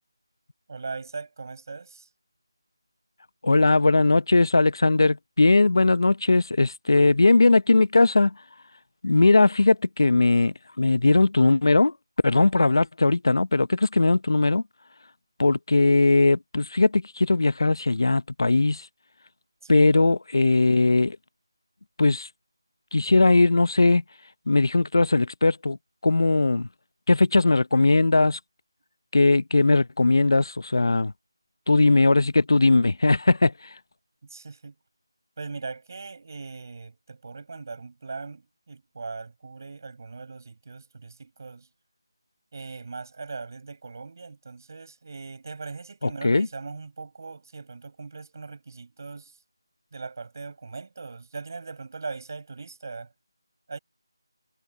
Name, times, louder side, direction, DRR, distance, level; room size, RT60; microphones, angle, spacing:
voice 1, 0.7-2.1 19.6-19.9 34.3-34.7 35.4-41.7 42.5-49.4 49.9-53.1 53.7-53.8, right 4 dB, 45° right, 7.6 m, -39 dB
voice 2, 3.4-8.3 9.0-11.9 12.2-14.6 15.4-18.9 19.7-21.2 22.0-22.3 22.9-24.0 24.5-25.8 26.0-26.7 27.1-28.4 29.1-31.1 31.7-33.5 46.0-46.5, left 3 dB, 65° left, 0.9 m, -19 dB
figure-of-eight pair, 165°, 2 cm